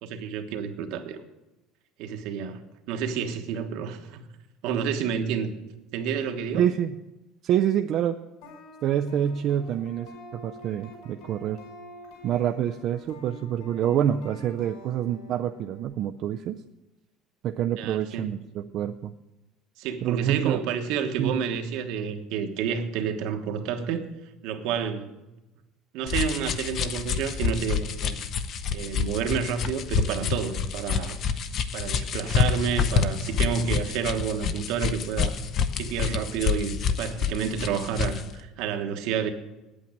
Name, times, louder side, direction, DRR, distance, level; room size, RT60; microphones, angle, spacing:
voice 1, 0.0-1.2 2.0-2.6 2.9-4.3 4.6-5.5 5.9-6.6 17.8-18.3 19.8-24.1 24.4-25.1 25.9-28.2 28.7-31.2 31.7-35.4 35.8-39.3, right 7 dB, 65° right, 6 dB, 1.3 m, -29 dB
voice 2, 6.5-6.9 7.4-8.2 8.8-11.6 12.2-16.6 17.4-19.1 20.0-20.6 21.2-21.4, right 10 dB, 45° right, 5 dB, 0.4 m, -27 dB
sound 1, 8.4-15.8, left 1 dB, 65° left, 5.1 m, -47 dB
sound 2, 26.1-38.3, left 6 dB, 35° left, 0.7 m, -28 dB
9.2 x 8.6 x 8.7 m, 1.0 s
cardioid pair, 165°, 0 cm